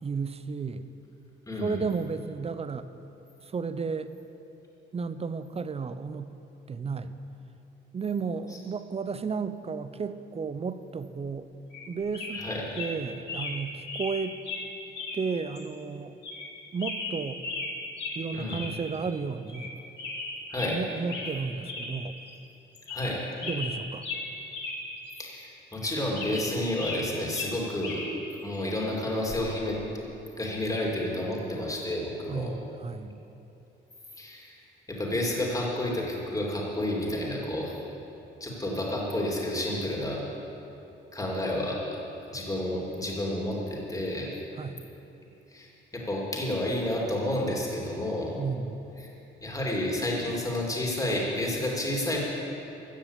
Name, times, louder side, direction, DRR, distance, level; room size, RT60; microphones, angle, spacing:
voice 1, 0.0-0.9 1.6-2.9 3.4-4.1 4.9-6.3 6.7-7.1 7.9-11.5 11.9-12.5 12.8-14.4 15.1-16.2 16.7-17.4 18.1-19.8 20.7-22.1 23.4-24.0 32.3-33.2 44.6-44.8 48.4-48.8, right 5 dB, 30° right, 12 dB, 0.7 m, -33 dB
voice 2, 1.5-1.8 8.5-8.6 12.3-12.6 18.3-18.6 20.5-20.8 22.9-23.2 25.2-28.0 28.4-29.8 30.3-32.5 34.2-34.6 34.9-37.7 38.4-40.2 41.1-42.0 42.3-44.3 45.5-48.3 49.0-49.1 49.4-52.2, left 1 dB, 15° left, -3 dB, 3.1 m, -30 dB
sound 1, 11.7-11.9 12.1-12.5 12.7-12.9 13.3-13.6 13.9-14.1 14.5-14.6 14.9-15.2 15.5-15.6 16.2-16.5 16.8-17.7 18.0-18.2 18.5-18.7 19.0-19.1 19.5-19.7 20.0-20.7 21.1-21.4 21.6-21.9 22.3-22.4 22.7-23.1 23.4-24.8 25.1-25.2 25.7-27.0 27.3-28.1 29.3-29.5, left 3 dB, 60° left, 2.8 m, -36 dB
14.0 x 7.0 x 8.4 m, 2.9 s
cardioid pair, 90°, 20 cm